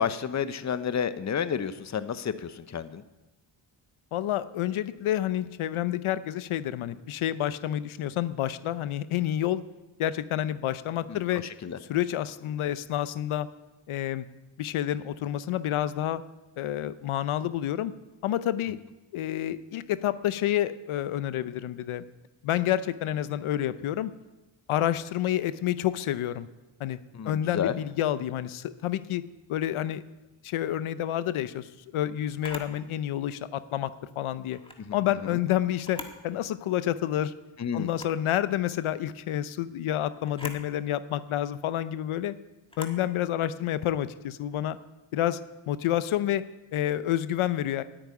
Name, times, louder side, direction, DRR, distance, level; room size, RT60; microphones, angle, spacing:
voice 1, 0.0-3.0 11.1-11.2 11.6-11.8 27.1-27.8 34.9-35.0 35.2-35.4 37.6-37.9, left 7 dB, 35° left, 13 dB, 0.8 m, -30 dB
voice 2, 4.1-9.6 10.0-11.4 11.8-13.5 13.9-14.3 14.6-16.2 16.6-17.9 18.2-18.8 19.1-22.0 22.4-24.1 24.7-26.5 26.8-27.0 27.2-29.2 29.5-30.0 30.4-34.6 34.9-37.3 37.7-42.3 42.8-44.8 45.1-45.4 45.7-46.4 46.7-47.8, left 12 dB, 75° left, 14 dB, 0.8 m, -29 dB
Camera, 32.4-32.8 34.5-34.8 35.8-36.2 36.7-36.8 37.9-38.2 40.3-40.6 42.7-43.0, left 1 dB, 10° left, 1.6 m, -41 dB
10.0 x 8.9 x 9.5 m, 1.1 s
cardioid pair, 95°, 49 cm